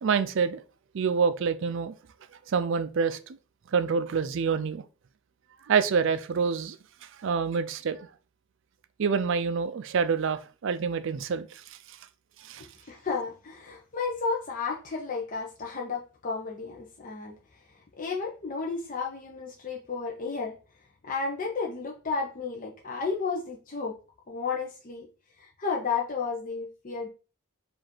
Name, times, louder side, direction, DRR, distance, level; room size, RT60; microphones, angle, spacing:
voice 1, 0.0-0.6 0.9-1.9 2.5-3.4 3.7-4.8 5.7-6.8 7.0-8.1 9.0-12.0 12.4-12.7, right 6 dB, 60° right, 0.4 m, -27 dB
voice 2, 12.6-17.4 18.0-20.6 21.0-24.0 24.3-25.1 25.4-27.1, left 4 dB, 40° left, 0.6 m, -32 dB
4.8 x 2.6 x 4.3 m
head